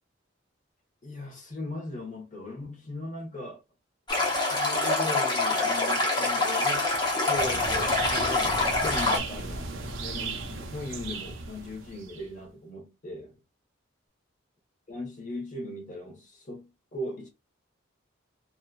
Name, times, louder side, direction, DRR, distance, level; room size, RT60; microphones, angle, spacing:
voice 1, 1.0-3.6 4.5-6.9 7.3-13.4 14.9-17.3, left 1 dB, 40° left, 1.0 m, -38 dB
Stream, 4.1-9.2, left 2 dB, 20° left, 0.7 m, -25 dB
sound 1, 7.3-12.3, right 3 dB, 70° right, 0.6 m, -36 dB
2.9 x 2.3 x 2.3 m
head